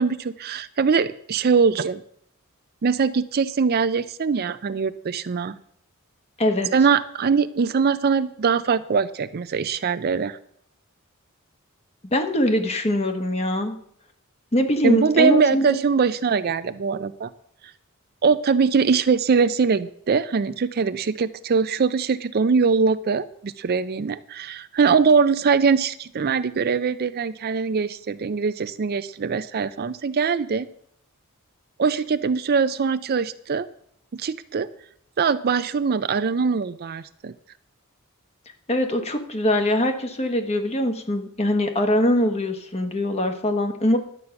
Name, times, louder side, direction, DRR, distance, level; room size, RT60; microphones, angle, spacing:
voice 1, 0.0-2.0 2.8-5.6 6.7-10.4 14.8-17.3 18.2-30.7 31.8-33.7 34.1-34.7 35.2-37.3, right 5 dB, 45° right, 13 dB, 0.4 m, -22 dB
voice 2, 6.4-6.7 12.0-13.7 14.5-15.8 38.7-44.0, left 1 dB, 30° left, 6 dB, 1.3 m, -22 dB
11.5 x 8.2 x 5.8 m, 0.68 s
head